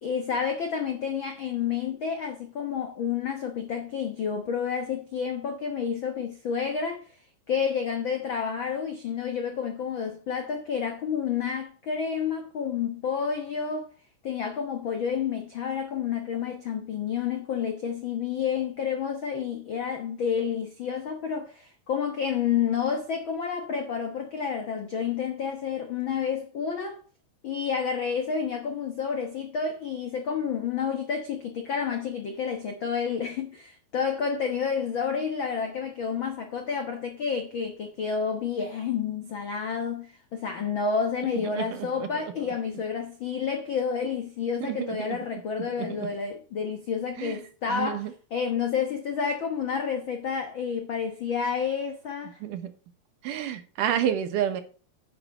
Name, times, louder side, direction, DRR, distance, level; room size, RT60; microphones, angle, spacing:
voice 1, 0.0-7.2 7.5-13.9 14.2-27.0 27.4-52.4, left 6 dB, 75° left, 1.1 m, -30 dB
voice 2, 41.6-42.1 44.6-45.2 45.8-45.9 47.2-47.4 47.7-48.1 52.4-52.7 53.2-54.6, right 10 dB, 70° right, 2.5 m, -29 dB
10.0 x 5.6 x 6.5 m
omnidirectional pair, 4.0 m